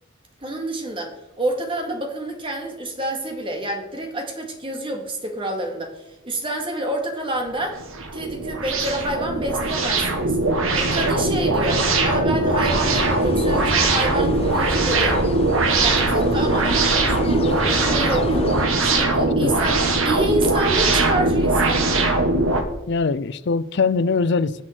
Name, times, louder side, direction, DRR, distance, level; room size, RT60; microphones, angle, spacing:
voice 1, 0.4-7.8 8.1-10.4 10.7-15.2 15.7-18.5 18.8-22.0, right 1 dB, 25° right, 2.2 m, -28 dB
sound 1, 7.5-22.6, right 2 dB, 75° right, 1.6 m, -20 dB
sound 2, 12.6-18.7, left 2 dB, 30° left, 0.9 m, -30 dB
voice 2, 22.9-24.6, left 4 dB, 55° left, 0.5 m, -22 dB
17.0 x 6.2 x 4.5 m
head